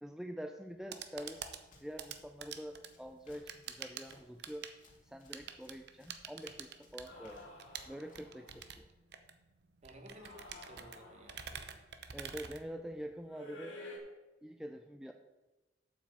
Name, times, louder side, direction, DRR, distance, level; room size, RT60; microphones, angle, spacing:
voice 1, 0.0-1.4 1.8-4.7 5.0-7.5 7.9-8.9 12.1-13.8 14.4-15.1, equal, 5° right, 5 dB, 0.5 m, -46 dB
sound 1, 0.6-13.3, right 7 dB, 65° right, 0.8 m, -48 dB
Run, 1.2-8.8, left 2 dB, 45° left, 2.2 m, -65 dB
sound 2, 7.1-8.7 10.0-11.8 13.3-14.0, left 2 dB, 85° left, 2.5 m, -52 dB
voice 2, 9.8-11.8, right 1 dB, 40° right, 4 dB, 1.4 m, -56 dB
8.1 x 6.0 x 7.4 m, 1.1 s
head